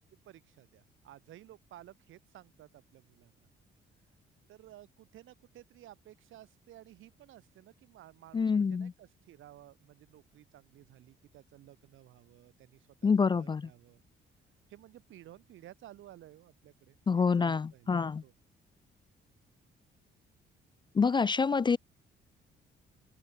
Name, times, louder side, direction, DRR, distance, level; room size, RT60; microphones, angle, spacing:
voice 1, 0.1-3.5 4.5-14.0 14.7-18.3, right 13 dB, 80° right, 3.1 m, -55 dB
voice 2, 8.3-8.9 13.0-13.7 17.1-18.2 20.9-21.8, left 5 dB, 25° left, 0.4 m, -27 dB
open air
cardioid pair, 90°, 20 cm